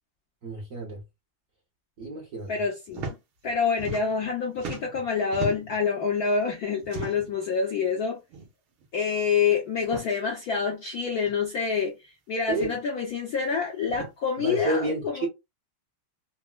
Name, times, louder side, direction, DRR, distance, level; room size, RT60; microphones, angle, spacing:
voice 1, 0.4-1.0 2.0-2.6 12.5-12.7 14.4-15.3, right 2 dB, 55° right, 0.9 m, -30 dB
voice 2, 2.5-3.1 3.4-8.2 8.9-15.3, left 5 dB, 70° left, 0.9 m, -27 dB
sound 1, 2.9-3.2 3.4-4.3 4.5-5.8 6.8-7.4 8.3-8.5 8.8-8.9 9.8-10.1 11.2-11.3 12.5-12.8 13.9-14.1, right 3 dB, 75° right, 1.7 m, -37 dB
4.0 x 2.0 x 2.3 m
omnidirectional pair, 2.4 m